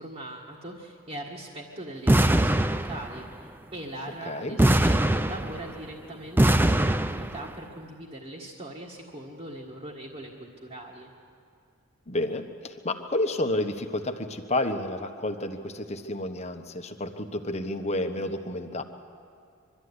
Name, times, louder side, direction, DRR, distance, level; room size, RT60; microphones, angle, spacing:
voice 1, 0.0-11.1, right 1 dB, 30° right, -3 dB, 1.7 m, -41 dB
sound 1, 2.1-3.3 4.6-5.9 6.4-7.5, right 1 dB, 10° right, 0.4 m, -22 dB
voice 2, 4.3-4.6 12.1-18.8, left 1 dB, 30° left, 6 dB, 1.1 m, -30 dB
23.5 x 13.0 x 9.6 m, 2.4 s
head